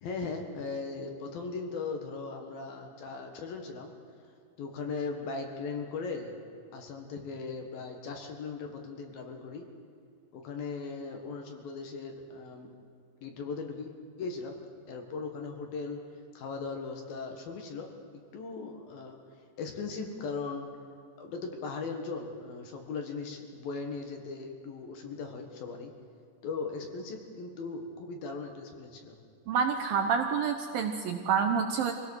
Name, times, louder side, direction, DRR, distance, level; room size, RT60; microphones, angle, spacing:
voice 1, 0.0-3.9 4.6-6.3 6.7-9.7 10.3-12.7 13.2-13.9 14.2-16.0 16.3-17.9 18.3-19.2 19.6-20.7 21.2-25.9 26.4-29.2, left 4 dB, 60° left, 3 dB, 3.2 m, -38 dB
voice 2, 29.5-31.9, right 6 dB, 70° right, 4 dB, 2.3 m, -28 dB
25.0 x 17.5 x 6.5 m, 2.3 s
omnidirectional pair, 5.1 m